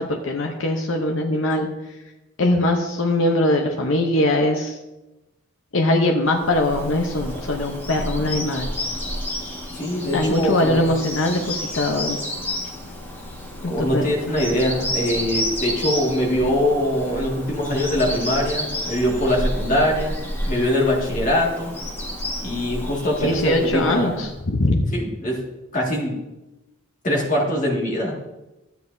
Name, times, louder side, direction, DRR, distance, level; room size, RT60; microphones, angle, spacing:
voice 1, 0.0-1.7 2.4-4.8 5.7-8.7 10.1-12.2 13.6-14.0 23.2-24.9, left 1 dB, 60° left, 2 dB, 0.8 m, -21 dB
Bird vocalization bird call bird song, 6.3-24.3, left 1 dB, 10° left, 1.6 m, -30 dB
voice 2, 9.7-10.9 13.7-20.2 20.5-21.7 22.4-24.3 24.9-25.4 25.7-26.2 27.0-28.2, left 1 dB, 35° left, -2 dB, 2.0 m, -22 dB
13.0 x 9.2 x 2.7 m, 1.0 s
head